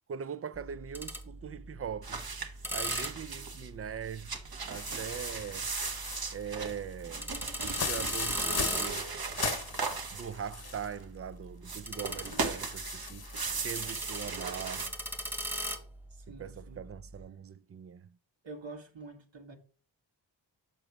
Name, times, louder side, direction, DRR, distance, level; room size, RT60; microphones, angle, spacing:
voice 1, 0.1-2.3 2.7-4.4 4.7-5.7 6.3-7.3 7.6-9.0 10.1-14.9 16.3-18.2, right 8 dB, 35° right, 0.4 m, -41 dB
sound 1, 0.5-17.3, equal, 5° right, 1.3 m, -40 dB
sound 2, 2.0-3.7 4.0-11.0 11.6-14.9, right 4 dB, 50° right, 1.2 m, -37 dB
sound 3, 4.7-11.0 11.3-11.4 12.2-13.6, left 6 dB, 55° left, 1.0 m, -40 dB
voice 2, 16.1-16.9 18.4-19.6, right 3 dB, 80° right, 1.7 m, -47 dB
6.9 x 6.1 x 3.5 m
wide cardioid pair, 95°, 45 cm